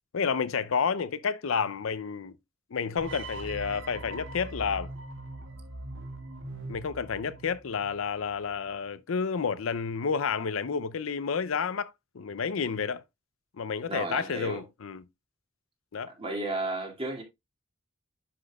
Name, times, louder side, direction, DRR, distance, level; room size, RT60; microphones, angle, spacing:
voice 1, 0.1-2.4 2.7-4.9 6.7-13.0 13.6-15.0 15.9-16.1, left 6 dB, 80° left, 0.5 m, -30 dB
sound 1, 3.0-8.1, right 2 dB, 65° right, 1.6 m, -41 dB
voice 2, 13.9-14.6 16.2-17.2, right 2 dB, 30° right, 2.4 m, -33 dB
10.0 x 6.0 x 2.3 m
head